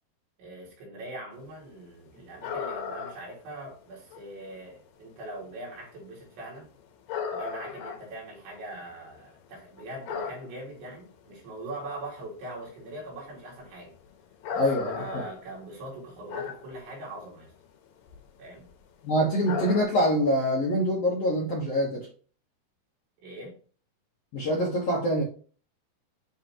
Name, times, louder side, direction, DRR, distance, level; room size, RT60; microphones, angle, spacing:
voice 1, 0.4-6.7 7.3-13.9 14.5-14.7 15.0-17.5 18.4-18.7 23.2-23.6, right 1 dB, 85° right, 4.9 m, -42 dB
sound 1, 2.4-3.3 3.7-3.8 4.1-4.5 5.5-5.8 6.3-6.5 7.1-9.2 9.5-10.8 11.3-11.4 11.8-11.9 12.2-12.5 12.8-13.0 13.6-16.8 17.1-17.3 17.9-18.2 18.5-18.8 19.4-19.8, left 6 dB, 70° left, 2.2 m, -35 dB
voice 2, 14.6-15.2 19.0-22.1 24.3-25.2, equal, 85° left, 1.3 m, -25 dB
10.5 x 3.6 x 3.0 m
omnidirectional pair, 5.1 m